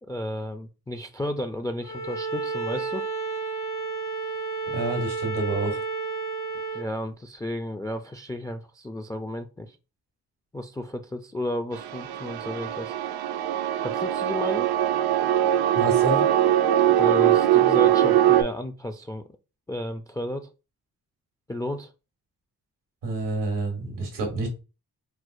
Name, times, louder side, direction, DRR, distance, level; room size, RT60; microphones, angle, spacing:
voice 1, 0.0-3.1 6.7-9.8 10.5-12.9 13.8-14.7 16.9-19.3 19.7-20.5 21.5-21.9, left 1 dB, 10° left, 0.3 m, -33 dB
Bowed string instrument, 1.8-6.9, right 4 dB, 85° left, 1.8 m, -31 dB
voice 2, 4.7-5.8 15.7-16.2 23.0-24.5, right 2 dB, 90° right, 1.3 m, -28 dB
sound 1, 11.7-18.4, right 11 dB, 65° right, 0.5 m, -21 dB
4.4 x 2.0 x 2.4 m
cardioid pair, 55°, 40 cm